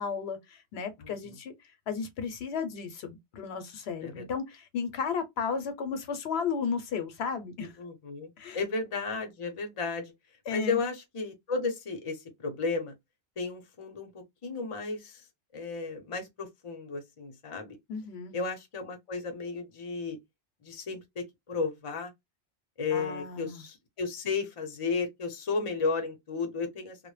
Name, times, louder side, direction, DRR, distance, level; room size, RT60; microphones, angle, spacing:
voice 1, 0.0-1.5 1.9-7.7 8.4-8.6 10.5-10.8 17.9-18.3 22.9-23.6, left 6 dB, 75° left, 0.8 m, -34 dB
voice 2, 1.0-1.4 4.0-4.3 7.8-10.1 10.5-12.9 13.4-15.2 15.5-17.8 18.3-20.2 20.6-22.1 22.8-27.0, left 4 dB, 35° left, 0.6 m, -34 dB
2.1 x 2.0 x 3.1 m
omnidirectional pair, 1.1 m